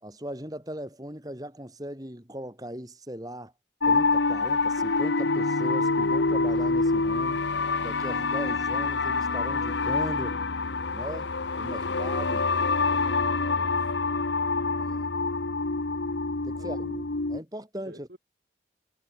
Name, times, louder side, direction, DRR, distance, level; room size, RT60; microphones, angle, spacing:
voice 1, 0.0-3.5 3.8-7.4 7.8-10.4 10.9-11.3 11.6-12.5 14.8-15.1 16.4-16.8 17.3-18.2, equal, 20° right, 3.7 m, -38 dB
sound 1, 3.8-17.4, left 3 dB, 80° left, 1.3 m, -26 dB
voice 2, 11.6-12.0 13.3-14.0 16.5-17.1 17.8-18.2, right 1 dB, 55° right, 4.9 m, -48 dB
head